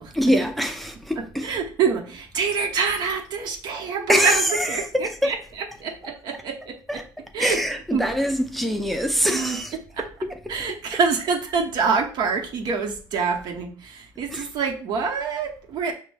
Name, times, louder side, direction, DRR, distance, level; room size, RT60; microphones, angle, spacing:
voice 1, 0.1-1.5 4.1-5.3 6.9-7.1 7.4-9.8 10.2-10.5 14.3-14.5, equal, ahead, 0.4 m, -24 dB
voice 2, 1.2-7.0 7.3-7.6 7.9-8.1 9.3-9.6 9.9-10.0 10.5-15.9, right 5 dB, 70° right, 0.9 m, -26 dB
6.2 x 2.2 x 3.4 m
cardioid pair, 125°, 8 cm